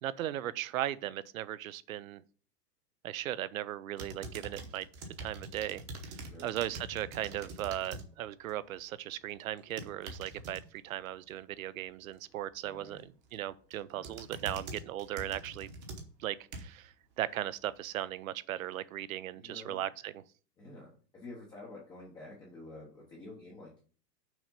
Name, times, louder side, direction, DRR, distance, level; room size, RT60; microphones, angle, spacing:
voice 1, 0.0-2.2 3.0-4.9 5.2-13.0 13.3-15.7 16.2-20.1, right 12 dB, 55° right, 0.5 m, -37 dB
sound 1, 4.0-8.1 8.4-8.8 9.6-10.6 13.0-13.3 13.7-16.9 17.4-17.5, right 2 dB, 25° right, 0.9 m, -45 dB
voice 2, 6.2-6.6 12.6-13.0 13.9-14.2 19.3-19.8 20.6-23.8, left 2 dB, 10° left, 0.7 m, -49 dB
6.2 x 4.2 x 5.2 m
supercardioid pair, 165°, 50 cm